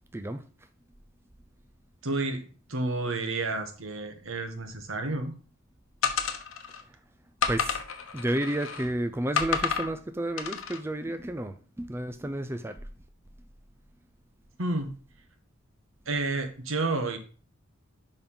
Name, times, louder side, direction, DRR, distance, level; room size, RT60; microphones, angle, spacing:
voice 1, 2.0-5.3 14.6-14.9 16.0-17.2, right 2 dB, 75° right, 1.5 m, -30 dB
sound 1, 6.0-6.8 7.4-8.9 9.4-9.9 10.4-10.8, left 6 dB, 80° left, 1.1 m, -30 dB
voice 2, 7.5-7.8 8.1-12.8, right 1 dB, 10° right, 0.4 m, -31 dB
7.0 x 5.4 x 5.5 m
head